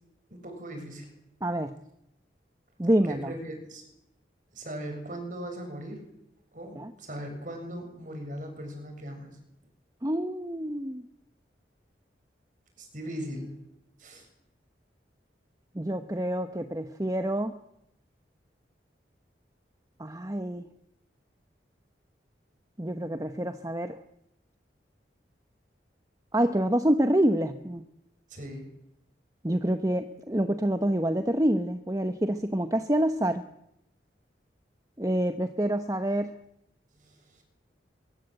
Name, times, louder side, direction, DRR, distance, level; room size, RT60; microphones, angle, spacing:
voice 1, 0.3-1.1 3.1-3.9 4.5-6.0 6.5-9.3 12.8-13.5 14.0-14.3 28.3-28.7 37.0-37.4, right 1 dB, 45° right, 4 dB, 7.1 m, -39 dB
voice 2, 1.4-1.7 2.8-3.3 6.8-6.9 10.0-11.1 15.7-17.5 20.0-20.7 22.8-24.0 26.3-27.8 29.4-33.4 35.0-36.3, right 1 dB, 20° right, 8 dB, 1.0 m, -27 dB
23.5 x 23.5 x 8.1 m, 0.81 s
head